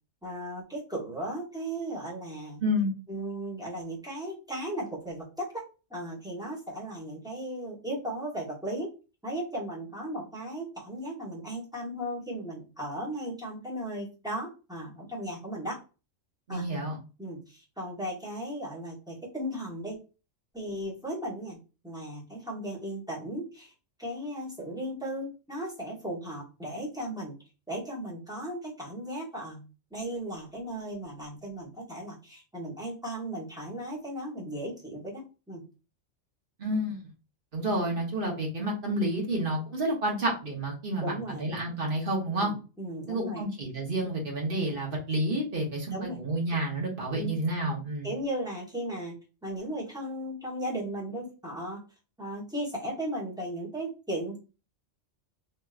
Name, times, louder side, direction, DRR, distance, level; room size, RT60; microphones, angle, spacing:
voice 1, 0.2-2.6 3.1-5.6 5.9-8.9 9.2-15.8 16.5-16.7 17.2-20.0 20.5-21.6 21.8-23.7 24.0-27.4 27.7-29.6 29.9-35.2 35.5-35.6 41.0-41.5 42.3-43.4 45.9-46.2 47.1-47.4 48.0-49.1 49.4-51.8 52.2-54.4, right 1 dB, 5° right, -5 dB, 1.2 m, -36 dB
voice 2, 2.6-2.9 16.5-17.0 36.6-37.0 37.5-42.5 43.1-48.1, right 1 dB, 45° right, -1 dB, 1.3 m, -30 dB
3.3 x 2.9 x 2.4 m, 0.32 s
omnidirectional pair, 1.3 m